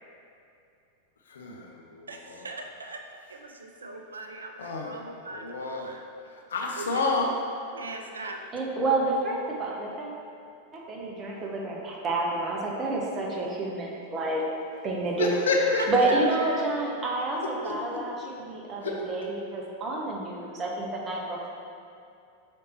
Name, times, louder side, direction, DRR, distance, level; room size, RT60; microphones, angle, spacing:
voice 1, 1.3-2.4 4.6-4.9 5.3-6.0 6.5-7.3 15.2-15.8 17.6-18.0 18.8-18.9, left 3 dB, 65° left, 0 dB, 0.5 m, -29 dB
voice 2, 2.1-3.0 3.3-6.0 6.8-7.4 7.7-8.4 15.8-16.6, right 2 dB, 75° right, 3 dB, 0.3 m, -39 dB
voice 3, 8.5-10.1 10.7-14.4 14.8-15.3 15.9-21.5, right 2 dB, 25° right, -2 dB, 0.7 m, -29 dB
5.1 x 3.2 x 2.9 m, 2.6 s
figure-of-eight pair, 90°, 0 cm